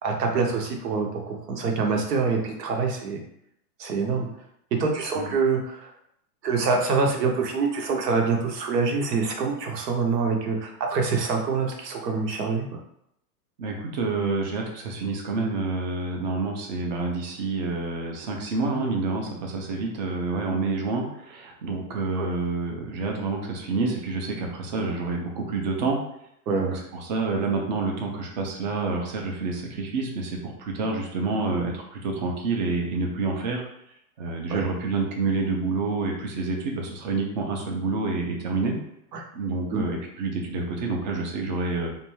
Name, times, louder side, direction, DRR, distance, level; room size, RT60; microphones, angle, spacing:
voice 1, 0.0-3.2 3.8-4.3 4.8-5.9 6.4-12.7 22.2-22.3 26.5-26.8 34.5-34.6 39.1-39.2 39.7-39.8, right 4 dB, 85° right, 2 dB, 0.8 m, -25 dB
voice 2, 13.6-26.0 26.6-33.6 34.2-38.8 39.3-41.9, right 3 dB, 30° right, 1 dB, 0.4 m, -28 dB
2.6 x 2.2 x 3.0 m, 0.75 s
hypercardioid pair, 135°, 48 cm